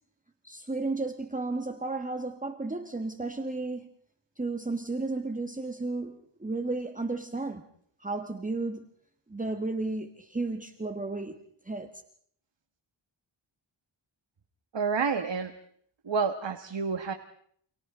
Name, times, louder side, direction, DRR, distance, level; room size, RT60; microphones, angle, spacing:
voice 1, 0.4-3.9 4.4-7.6 8.0-8.9 9.3-11.4 11.6-12.0, right 3 dB, 15° right, 1.5 m, -33 dB
voice 2, 14.7-15.5 16.1-17.1, right 5 dB, 65° right, 1.8 m, -29 dB
29.0 x 29.0 x 3.9 m
wide cardioid pair, 125°, 48 cm